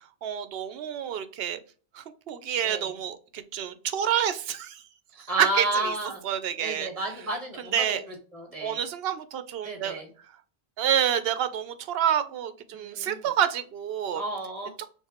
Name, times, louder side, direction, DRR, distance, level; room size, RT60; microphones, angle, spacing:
voice 1, 0.2-1.6 1.9-4.8 5.2-5.9 6.2-6.9 7.7-8.0 8.6-10.0 10.8-14.2, right 9 dB, 75° right, 11 dB, 0.8 m, -28 dB
voice 2, 5.3-6.2 6.6-8.0 8.3-8.8 9.6-10.1 12.7-13.3 14.1-14.7, right 2 dB, 35° right, 1 dB, 1.4 m, -32 dB
4.6 x 3.5 x 2.9 m, 0.40 s
omnidirectional pair, 1.0 m